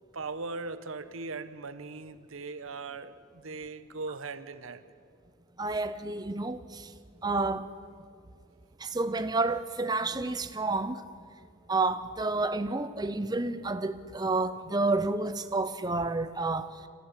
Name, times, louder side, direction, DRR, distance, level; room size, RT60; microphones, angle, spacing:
voice 1, 0.1-4.8, right 3 dB, 90° right, 1.2 m, -39 dB
voice 2, 5.6-6.9 7.2-7.7 8.8-11.0 11.7-16.7, right 3 dB, 20° right, 0.7 m, -30 dB
25.5 x 15.0 x 9.9 m
head